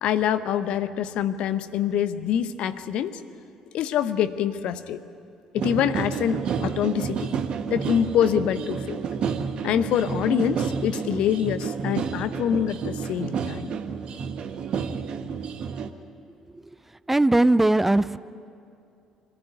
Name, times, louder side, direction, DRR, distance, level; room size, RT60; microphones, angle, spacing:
voice 1, 0.0-3.2 3.7-5.0 5.5-7.3 7.7-9.0 9.6-13.7, left 9 dB, 55° left, 12 dB, 0.8 m, -25 dB
sound 1, 5.6-15.9, right 6 dB, 50° right, 1.1 m, -30 dB
voice 2, 17.1-18.2, right 2 dB, 10° right, 16 dB, 0.5 m, -19 dB
24.5 x 15.0 x 9.7 m, 2.5 s
figure-of-eight pair, 50°, 2 cm